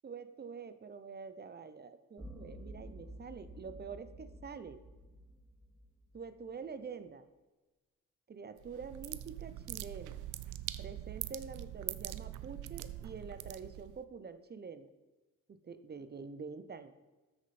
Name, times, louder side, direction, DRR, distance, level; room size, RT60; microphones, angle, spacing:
voice 1, 0.0-4.8 6.1-7.2 8.3-10.2 10.8-14.9 15.5-16.9, right 5 dB, 35° right, 12 dB, 0.7 m, -46 dB
sound 1, 2.2-6.5, equal, ahead, 3.2 m, -51 dB
sound 2, 8.6-14.0, right 14 dB, 85° right, 0.5 m, -43 dB
13.0 x 6.4 x 4.2 m, 1.2 s
cardioid pair, 90°, 30 cm